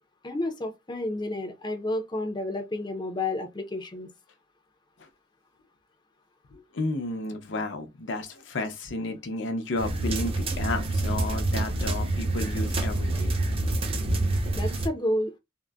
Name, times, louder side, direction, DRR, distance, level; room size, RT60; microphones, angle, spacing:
voice 1, 0.2-4.1 14.5-15.3, left 1 dB, 25° left, 0.5 m, -30 dB
voice 2, 6.5-13.3, left 2 dB, 75° left, 0.6 m, -32 dB
sound 1, 9.8-14.9, right 2 dB, 30° right, 0.6 m, -27 dB
3.6 x 2.0 x 2.2 m
head